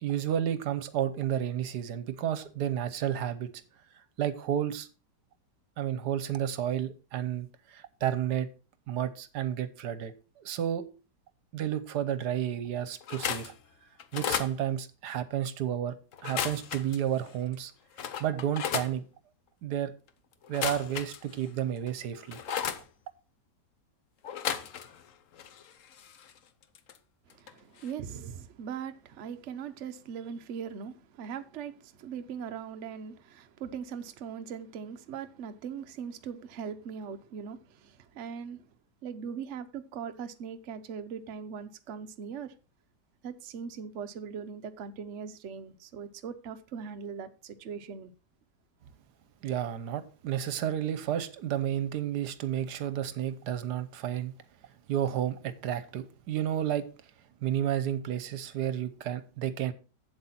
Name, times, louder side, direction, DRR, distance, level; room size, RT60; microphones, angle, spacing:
voice 1, 0.0-3.5 4.2-4.9 5.8-7.5 7.7-8.5 8.9-10.1 10.4-10.8 11.5-13.5 14.1-15.9 16.2-17.7 18.2-19.0 19.6-19.9 20.5-22.4 49.4-54.3 54.9-56.8 57.4-59.7, right 10 dB, 75° right, 1.3 m, -31 dB
sound 1, 13.0-13.5 14.0-14.5 16.1-17.0 17.5-17.6 18.0-18.9 20.4-21.5 21.9-22.8 24.2-25.1 25.3-27.0 27.3-27.5 27.8-27.9, left 8 dB, 55° left, 1.0 m, -34 dB
voice 2, 27.4-38.6 39.0-42.5 43.2-48.1, right 7 dB, 55° right, 0.9 m, -40 dB
8.0 x 7.8 x 4.2 m
omnidirectional pair, 1.8 m